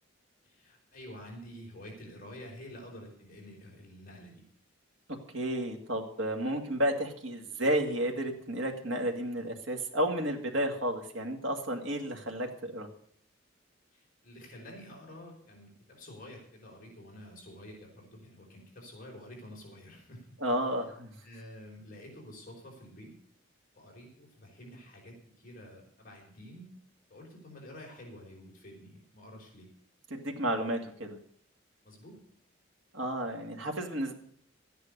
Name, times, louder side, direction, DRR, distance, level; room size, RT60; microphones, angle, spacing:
voice 1, 0.4-4.4 13.9-20.3 21.2-23.1 23.7-26.7 27.1-29.7 31.8-32.2, left 1 dB, 40° left, -1 dB, 4.9 m, -49 dB
voice 2, 5.3-12.9 20.4-21.1 30.1-31.2 32.9-34.1, right 1 dB, 65° right, 2 dB, 2.3 m, -32 dB
13.0 x 9.8 x 6.7 m, 0.62 s
head